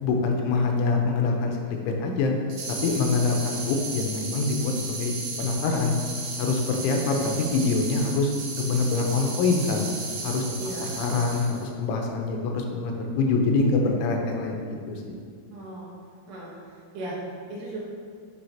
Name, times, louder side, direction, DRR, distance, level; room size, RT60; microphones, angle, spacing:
voice 1, 0.0-2.3 2.8-5.9 6.4-9.8 10.2-10.4 10.8-14.6 14.9-15.2, left 3 dB, 85° left, 2 dB, 3.2 m, -25 dB
sound 1, 2.5-11.7, right 3 dB, 85° right, 4.0 m, -35 dB
voice 2, 10.6-11.0 15.5-15.9 16.3-17.8, right 1 dB, 65° right, -7 dB, 3.5 m, -37 dB
11.0 x 5.6 x 2.8 m, 2.1 s
omnidirectional pair, 5.6 m